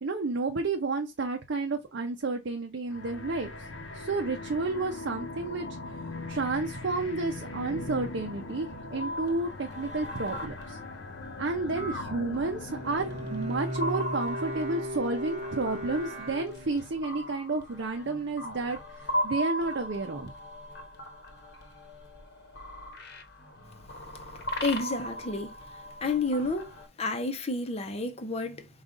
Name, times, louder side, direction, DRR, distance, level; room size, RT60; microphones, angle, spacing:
voice 1, 0.0-3.5 3.9-6.0 6.3-10.8 11.4-20.3, right 3 dB, 65° right, 0.6 m, -31 dB
sound 1, 2.9-13.7, left 2 dB, 85° left, 0.8 m, -41 dB
sound 2, 8.9-26.9, equal, 55° left, 1.0 m, -39 dB
Bowed string instrument, 12.7-17.1, equal, 35° right, 0.8 m, -36 dB
voice 2, 24.6-25.5 26.0-26.7 27.0-28.8, left 3 dB, 35° left, 0.7 m, -30 dB
5.1 x 2.4 x 3.7 m
head